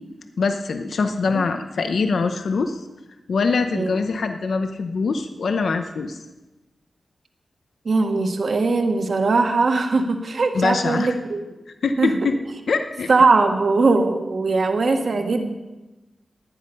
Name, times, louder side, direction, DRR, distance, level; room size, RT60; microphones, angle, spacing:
voice 1, 0.4-2.9 3.3-6.2 10.5-11.2 11.8-12.4 12.7-13.1, left 4 dB, 90° left, 7 dB, 0.8 m, -23 dB
voice 2, 7.8-11.4 12.0-12.1 13.1-15.5, right 3 dB, 60° right, 4 dB, 1.4 m, -20 dB
15.0 x 10.5 x 5.5 m, 1.1 s
wide cardioid pair, 145°, 0 cm